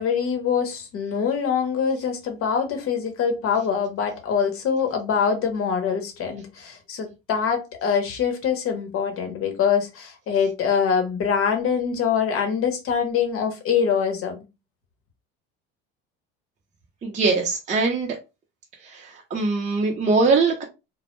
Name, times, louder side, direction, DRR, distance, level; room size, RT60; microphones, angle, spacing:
voice 1, 0.0-14.4, left 7 dB, 45° left, 0.9 m, -24 dB
voice 2, 17.0-18.2 18.8-20.6, right 4 dB, 25° right, 0.6 m, -22 dB
2.1 x 2.1 x 2.9 m
supercardioid pair, 100°, 30 cm